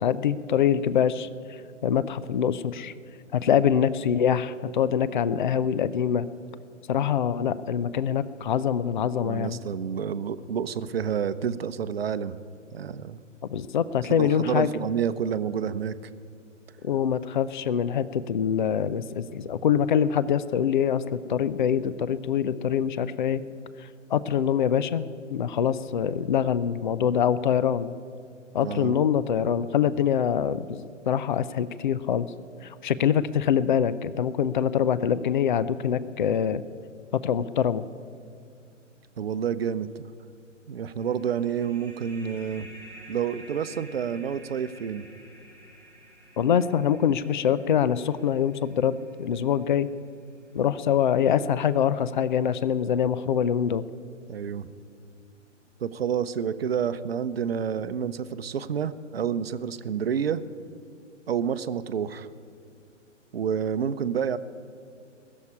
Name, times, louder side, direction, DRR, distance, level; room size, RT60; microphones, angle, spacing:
voice 1, 0.0-1.3 1.8-2.9 3.3-6.3 6.9-9.6 13.5-14.7 16.8-21.0 21.3-23.4 24.1-25.0 25.3-27.9 28.5-32.3 32.6-36.6 37.2-37.8 46.4-48.9 49.2-49.9 50.5-53.9, left 8 dB, 40° left, 16 dB, 0.5 m, -24 dB
voice 2, 9.2-12.4 12.7-13.2 14.2-15.9 28.6-29.0 39.2-40.1 40.7-42.7 43.1-45.1 54.3-54.7 55.8-60.4 61.3-62.3 63.3-64.4, right 8 dB, 50° right, 13 dB, 0.7 m, -29 dB
sound 1, 41.0-50.3, right 1 dB, 70° left, 4.6 m, -50 dB
19.5 x 7.4 x 9.7 m, 2.3 s
figure-of-eight pair, 130°, 37 cm